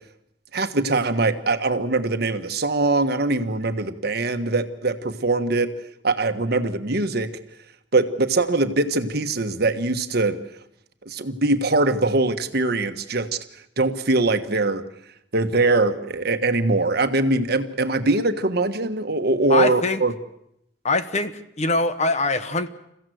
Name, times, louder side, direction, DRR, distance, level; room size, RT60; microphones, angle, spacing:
voice 1, 0.5-5.7 6.0-7.3 7.9-10.4 11.0-13.4 13.8-14.8 15.3-20.1, right 2 dB, 55° right, 8 dB, 1.4 m, -22 dB
voice 2, 19.5-20.0 20.8-22.7, left 2 dB, 40° left, 11 dB, 1.1 m, -23 dB
28.0 x 15.5 x 7.9 m, 0.79 s
head